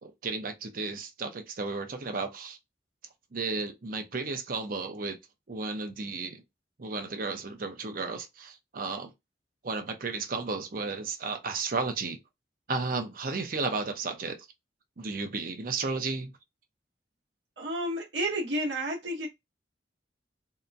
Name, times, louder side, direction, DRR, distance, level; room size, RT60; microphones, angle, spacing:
voice 1, 0.0-2.6 3.3-5.2 5.5-6.4 6.8-9.1 9.6-12.2 12.7-14.4 15.0-16.3, right 4 dB, 50° right, 0.6 m, -33 dB
voice 2, 17.6-19.3, right 1 dB, 80° right, 0.8 m, -31 dB
2.8 x 2.2 x 2.5 m
head